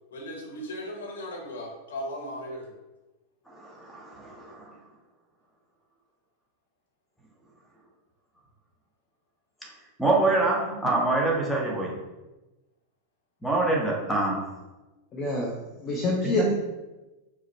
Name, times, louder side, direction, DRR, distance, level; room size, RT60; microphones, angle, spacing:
voice 1, 0.1-2.7, equal, 65° left, -1 dB, 1.0 m, -37 dB
voice 2, 3.5-4.7 10.0-12.0 13.4-14.5 16.3-16.4, right 2 dB, ahead, -3 dB, 0.9 m, -25 dB
voice 3, 15.1-16.5, left 1 dB, 30° left, -1 dB, 0.6 m, -27 dB
4.9 x 2.0 x 4.2 m, 1.1 s
figure-of-eight pair, 90°, 0 cm